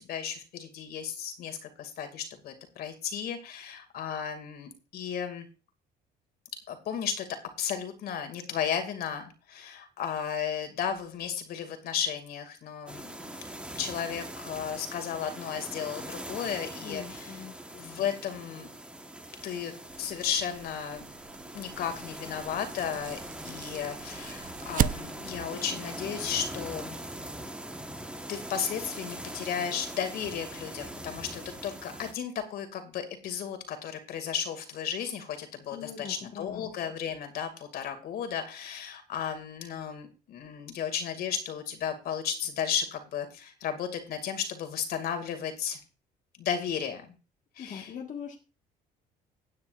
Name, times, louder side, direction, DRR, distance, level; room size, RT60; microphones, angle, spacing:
voice 1, 0.0-5.5 6.7-13.4 13.8-17.4 17.7-18.7 19.4-21.1 21.5-23.2 23.4-27.0 28.3-45.8 46.4-47.1 47.6-47.9, left 8 dB, 65° left, 7 dB, 2.4 m, -34 dB
sound 1, 12.9-32.1, right 1 dB, 5° right, 1.3 m, -42 dB
voice 2, 16.8-17.5 35.7-36.7 47.6-48.4, left 7 dB, 45° left, 0 dB, 1.6 m, -41 dB
sound 2, 19.9-25.5, right 10 dB, 55° right, 0.6 m, -36 dB
16.0 x 9.5 x 2.5 m, 0.32 s
cardioid pair, 110°, 17 cm